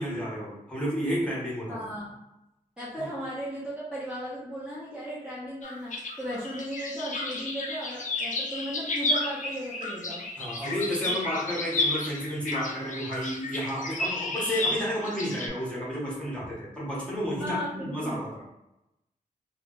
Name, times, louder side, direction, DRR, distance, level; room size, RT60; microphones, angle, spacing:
voice 1, 0.0-1.8 3.0-3.1 10.4-18.4, equal, 10° left, -7 dB, 1.1 m, -31 dB
voice 2, 1.7-2.2 2.8-10.3 11.0-11.1 17.4-18.2, equal, 5° right, -9 dB, 0.9 m, -36 dB
sound 1, 5.6-15.5, left 2 dB, 65° left, 0.5 m, -32 dB
3.1 x 2.3 x 3.9 m, 0.91 s
wide cardioid pair, 165°, 14 cm